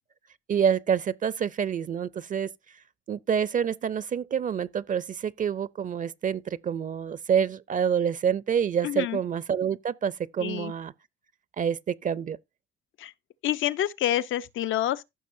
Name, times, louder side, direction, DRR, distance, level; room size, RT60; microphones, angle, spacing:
voice 1, 0.5-2.8 3.1-10.9 11.6-12.4, right 8 dB, 40° right, 0.5 m, -27 dB
voice 2, 8.8-9.2 10.4-10.7 13.0-13.1 13.4-15.0, left 12 dB, 80° left, 0.7 m, -27 dB
15.0 x 6.2 x 2.6 m
cardioid pair, 90°, 20 cm